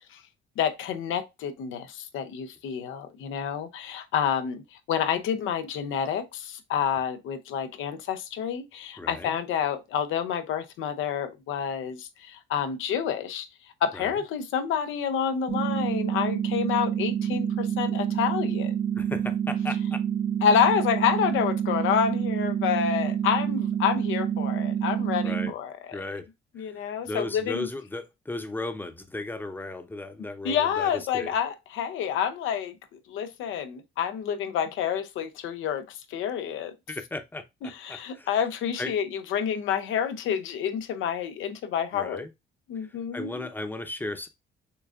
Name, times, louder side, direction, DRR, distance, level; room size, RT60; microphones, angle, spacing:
voice 1, 0.6-13.5 13.8-18.7 20.4-25.7 26.5-27.7 30.4-32.8 33.1-36.7 37.6-42.2 42.7-43.5, left 8 dB, 85° left, 0.7 m, -28 dB
voice 2, 9.0-9.3 13.9-14.1 19.0-20.0 25.2-25.5 25.9-26.3 26.6-31.3 36.9-37.4 37.9-38.4 38.8-38.9 41.9-42.3 42.7-44.3, left 2 dB, 10° left, 0.7 m, -36 dB
sound 1, 15.5-25.5, right 9 dB, 80° right, 1.1 m, -27 dB
6.8 x 2.6 x 2.4 m
cardioid pair, 90°, 20 cm